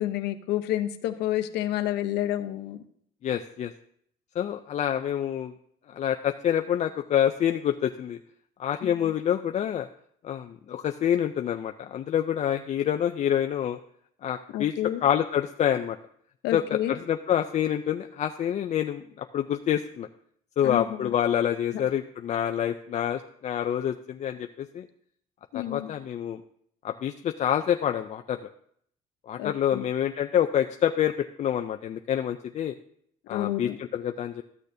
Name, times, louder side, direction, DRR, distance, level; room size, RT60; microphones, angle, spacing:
voice 1, 0.0-2.8 8.8-8.9 14.5-15.0 16.4-17.0 20.6-21.1 25.5-25.9 29.4-29.9 33.3-33.8, left 13 dB, 85° left, 8 dB, 0.7 m, -29 dB
voice 2, 3.2-3.7 4.4-5.5 5.9-8.2 8.6-9.9 10.2-13.8 14.2-14.7 15.0-16.0 16.5-20.1 20.6-24.9 25.5-26.4 26.8-28.5 29.3-32.7 33.3-34.4, left 10 dB, 45° left, 7 dB, 0.4 m, -27 dB
13.0 x 6.4 x 2.7 m, 0.66 s
cardioid pair, 110°, 17 cm